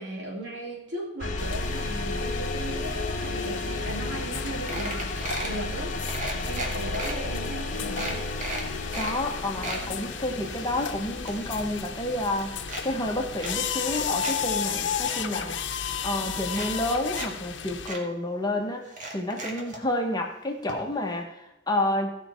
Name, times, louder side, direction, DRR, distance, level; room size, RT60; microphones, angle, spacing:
voice 1, 0.0-6.0 6.4-8.2, right 1 dB, 70° right, -2 dB, 3.1 m, -37 dB
sound 1, 1.2-15.1, left 2 dB, 45° left, 1.0 m, -34 dB
sound 2, 1.4-17.9, left 7 dB, 85° left, 0.7 m, -34 dB
sound 3, 4.0-4.1 4.3-4.4 4.7-5.6 6.1-7.1 7.6-7.7 8.0-9.2 9.4-9.8 10.4-11.9 12.1-12.8 13.4-14.4 14.7-15.2 16.0-16.1 16.5-17.3 17.5-17.6 17.9-18.0 18.9-19.8 20.7-20.8 21.1-21.2, right 2 dB, 45° right, 1.8 m, -36 dB
voice 2, 8.9-15.6 16.0-22.2, left 1 dB, 20° left, 2 dB, 1.2 m, -30 dB
16.0 x 5.6 x 4.4 m, 0.88 s
head